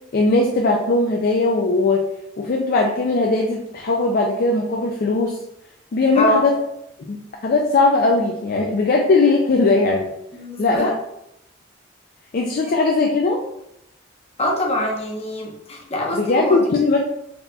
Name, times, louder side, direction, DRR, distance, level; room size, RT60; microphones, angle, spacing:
voice 1, 0.1-2.0 2.4-5.4 5.9-6.5 7.1-7.2 7.4-10.1 10.6-11.0 12.3-13.4 16.1-17.0, left 3 dB, 50° left, 1 dB, 0.4 m, -19 dB
voice 2, 6.1-6.5 10.3-10.9 14.4-16.6, left 1 dB, 30° left, -2 dB, 0.9 m, -24 dB
4.1 x 4.0 x 2.3 m, 0.80 s
head